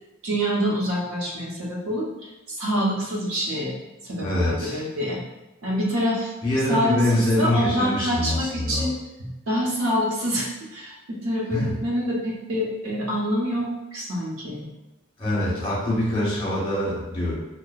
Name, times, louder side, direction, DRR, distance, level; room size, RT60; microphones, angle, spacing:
voice 1, 0.2-2.1 2.5-3.7 4.0-5.2 5.6-6.3 6.7-6.9 7.4-8.9 9.2-14.6, equal, 85° right, -4 dB, 1.1 m, -26 dB
voice 2, 4.2-4.8 6.4-8.8 11.5-11.7 15.2-17.3, left 1 dB, 25° left, -6 dB, 1.2 m, -24 dB
5.6 x 2.4 x 2.4 m, 0.98 s
head